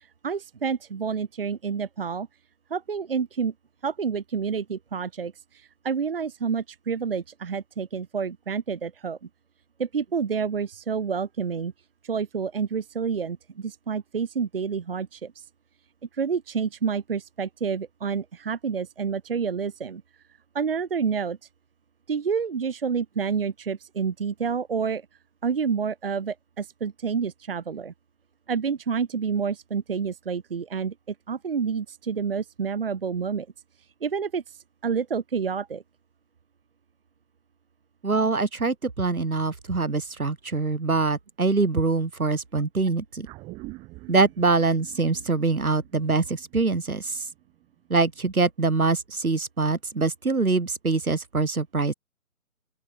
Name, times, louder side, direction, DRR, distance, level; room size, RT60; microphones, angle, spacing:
voice 1, 0.2-2.3 2.7-3.5 3.8-9.2 9.8-11.7 12.0-15.4 16.1-20.0 20.5-21.4 22.1-25.0 25.4-27.9 28.5-33.5 34.0-35.8, right 6 dB, 40° right, 1.2 m, -29 dB
voice 2, 38.0-43.3 44.1-47.2 47.9-51.9, right 3 dB, 75° right, 4.0 m, -24 dB
sound 1, 43.2-47.9 48.2-48.3, right 22 dB, 10° right, 2.3 m, -46 dB
open air
figure-of-eight pair, 155°, 43 cm